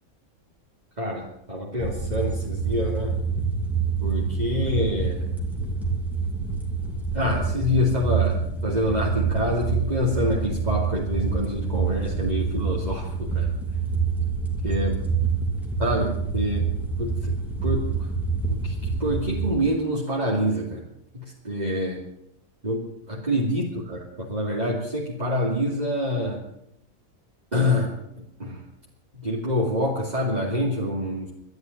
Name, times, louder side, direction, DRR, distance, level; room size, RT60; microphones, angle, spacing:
voice 1, 1.0-3.2 4.0-5.3 7.1-13.5 14.6-15.0 15.8-16.6 17.0-18.1 18.5-20.8 21.1-22.0 22.6-26.4 27.5-28.6 29.1-31.3, left 1 dB, 30° right, -5 dB, 2.8 m, -26 dB
sound 1, 1.8-19.5, right 5 dB, ahead, 2.8 m, -27 dB
12.5 x 10.5 x 9.2 m, 0.79 s
omnidirectional pair, 1.4 m